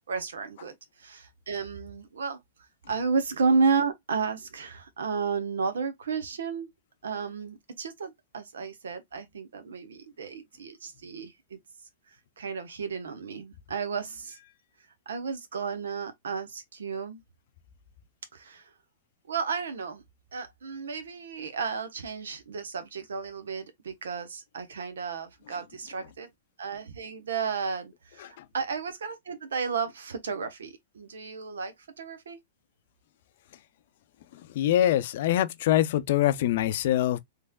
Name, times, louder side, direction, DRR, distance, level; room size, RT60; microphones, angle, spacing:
voice 1, 0.1-2.4 2.9-6.7 7.0-11.6 12.4-14.4 15.1-17.2 18.3-18.7 19.3-20.0 20.3-26.3 26.6-32.4, right 5 dB, 85° right, 0.9 m, -32 dB
voice 2, 34.3-37.2, left 12 dB, 60° left, 0.5 m, -24 dB
3.4 x 3.2 x 2.2 m
hypercardioid pair, 130°, 0 cm